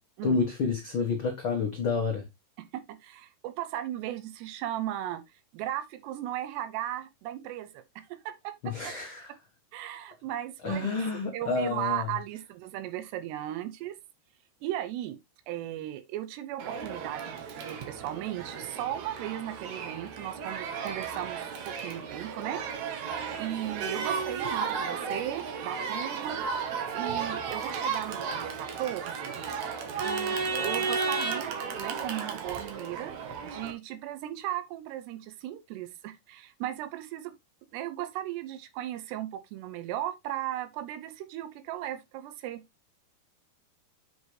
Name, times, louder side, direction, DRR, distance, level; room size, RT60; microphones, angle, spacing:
voice 1, 0.2-2.2 8.6-9.3 10.6-12.1, left 4 dB, 80° left, 1.1 m, -29 dB
voice 2, 2.6-5.2 5.5-7.8 8.1-8.9 9.7-11.0 11.3-14.0 14.6-15.2 15.5-22.6 23.4-26.4 26.9-29.4 30.0-33.2 33.4-37.3 37.7-42.6, right 13 dB, 90° right, 3.0 m, -36 dB
Crowd, 16.6-33.7, right 5 dB, 60° right, 2.1 m, -34 dB
7.7 x 6.4 x 3.3 m
omnidirectional pair, 4.7 m